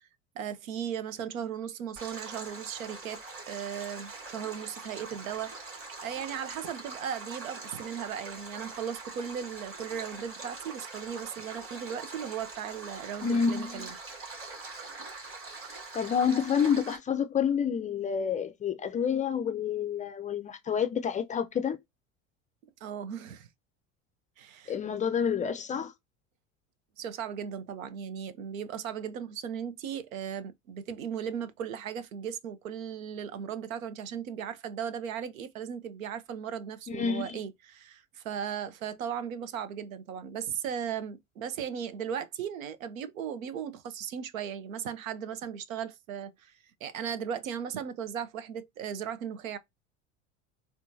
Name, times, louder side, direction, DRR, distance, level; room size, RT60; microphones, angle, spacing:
voice 1, 0.4-13.9 22.8-23.5 24.4-24.7 27.0-46.5 46.8-49.6, right 8 dB, 85° right, 0.6 m, -37 dB
Stream, 2.0-17.0, right 3 dB, 35° right, 2.5 m, -43 dB
voice 2, 13.2-13.9 15.9-21.8 24.7-25.9 36.9-37.4, left 7 dB, 20° left, 0.3 m, -28 dB
4.3 x 2.3 x 2.6 m
hypercardioid pair, 80°, 40 cm